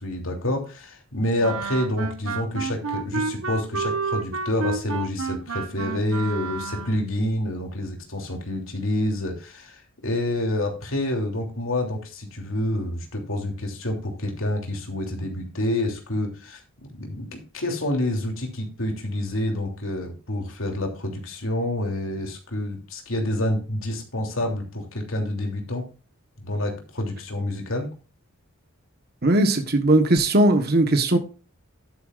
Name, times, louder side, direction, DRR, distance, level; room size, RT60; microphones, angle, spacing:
voice 1, 0.0-25.8 26.4-27.9, left 1 dB, 65° left, 3.1 m, -28 dB
Wind instrument woodwind instrument, 1.4-7.1, right 4 dB, 80° right, 1.3 m, -30 dB
voice 2, 29.2-31.2, right 1 dB, 45° right, 1.3 m, -18 dB
11.5 x 10.0 x 2.5 m
head